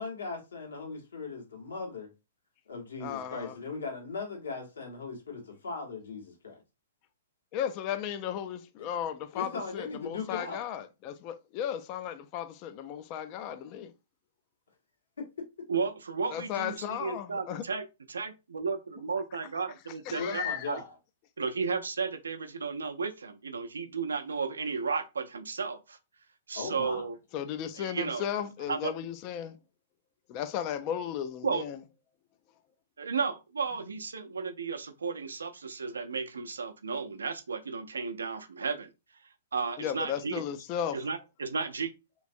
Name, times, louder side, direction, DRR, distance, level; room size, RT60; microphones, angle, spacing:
voice 1, 0.0-2.1 2.7-6.6 9.3-10.6 15.2-15.3 20.2-21.0 26.5-27.1, left 4 dB, 70° left, 1.4 m, -38 dB
voice 2, 3.0-3.5 7.5-13.9 16.3-17.6 20.1-20.7 27.3-29.6 30.3-31.8 39.8-41.0, left 9 dB, 35° left, 0.4 m, -35 dB
voice 3, 15.7-20.8 21.4-26.0 26.5-27.2 27.8-28.3 28.7-28.9 31.4-31.6 33.0-38.9 39.2-40.4 40.9-41.9, right 5 dB, 75° right, 0.6 m, -34 dB
3.3 x 3.0 x 2.5 m
figure-of-eight pair, 110°, 0 cm